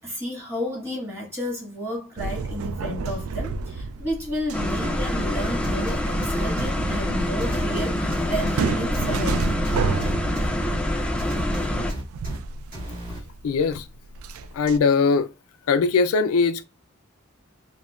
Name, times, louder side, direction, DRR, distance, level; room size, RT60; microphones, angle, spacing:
voice 1, 0.0-9.6, left 1 dB, 15° right, 1.5 m, -32 dB
sound 1, 2.2-14.8, right 4 dB, 85° right, 0.3 m, -31 dB
sound 2, 4.5-11.9, left 1 dB, 5° left, 0.3 m, -26 dB
sound 3, 5.6-6.7 7.4-8.6 8.9-10.5 11.2-12.4 12.7-13.2, equal, 40° right, 1.5 m, -34 dB
voice 2, 13.4-13.9 14.5-15.3 15.7-16.6, left 4 dB, 85° left, 0.4 m, -20 dB
5.0 x 2.1 x 2.3 m
head